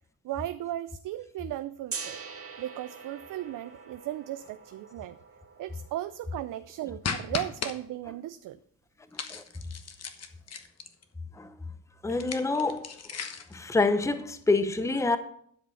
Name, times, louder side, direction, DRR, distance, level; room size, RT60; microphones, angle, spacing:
voice 1, 0.2-2.2 2.6-5.2 5.6-8.6, right 13 dB, 60° right, 0.5 m, -36 dB
Gong, 1.9-7.8, right 5 dB, 40° right, 1.8 m, -44 dB
sound 1, 7.0-7.7 9.1-11.0 12.1-13.6, left 6 dB, 45° left, 1.2 m, -36 dB
voice 2, 9.1-9.4 11.3-11.5 12.0-12.9 13.1-13.2 13.5-15.2, left 3 dB, 10° left, 0.8 m, -27 dB
12.0 x 5.1 x 5.7 m
supercardioid pair, 70°, 36 cm